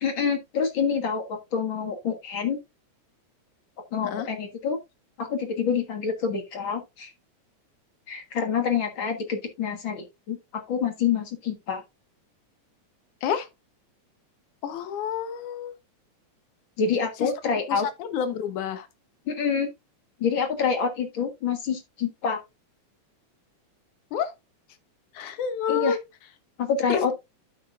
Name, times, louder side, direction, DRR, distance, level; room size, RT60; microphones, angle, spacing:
voice 1, 0.0-2.6 3.9-4.8 5.2-7.1 8.1-11.8 16.8-17.9 19.3-19.7 20.2-22.4 25.7-26.0 26.6-27.1, left 6 dB, 45° left, 2.0 m, -27 dB
voice 2, 14.6-15.7 17.2-17.3 17.7-18.9 24.1-24.3 25.1-26.0 26.9-27.1, left 7 dB, 80° left, 2.6 m, -29 dB
12.5 x 5.7 x 2.5 m
omnidirectional pair, 3.4 m